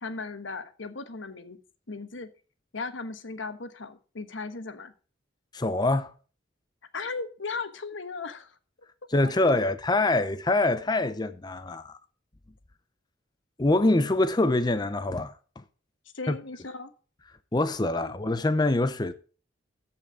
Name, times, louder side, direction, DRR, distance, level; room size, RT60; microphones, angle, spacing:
voice 1, 0.0-1.6 1.9-2.3 2.7-4.9 6.9-8.5 9.2-9.7 16.1-16.9 18.0-18.1, left 4 dB, 85° left, 1.2 m, -37 dB
voice 2, 5.5-6.1 9.1-12.0 13.6-15.3 16.3-16.4 17.5-19.1, left 2 dB, 20° left, 0.6 m, -24 dB
14.0 x 5.8 x 4.7 m
head